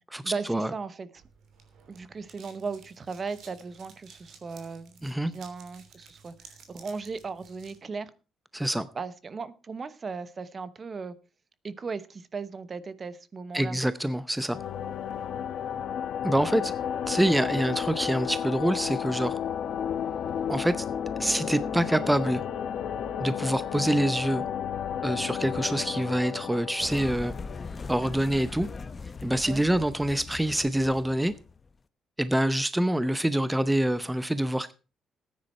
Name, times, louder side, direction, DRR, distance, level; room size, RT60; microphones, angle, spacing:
voice 1, 0.2-1.2 1.9-5.0 5.3-8.1 8.9-11.2 11.6-13.8 29.5-29.6, right 4 dB, 40° right, 0.9 m, -37 dB
sound 1, 1.2-7.8, right 6 dB, 75° right, 3.1 m, -54 dB
voice 2, 8.5-8.9 13.5-14.6 16.2-16.7 17.1-19.4 20.5-20.8 21.2-22.4 23.2-24.4 25.0-27.3 27.9-28.7 29.2-31.3 32.2-34.7, right 1 dB, 5° right, 0.7 m, -26 dB
sound 2, 14.5-28.1, left 8 dB, 70° left, 1.1 m, -32 dB
sound 3, 26.8-31.7, left 4 dB, 35° left, 0.8 m, -40 dB
14.0 x 9.5 x 4.3 m
cardioid pair, 90°, 0 cm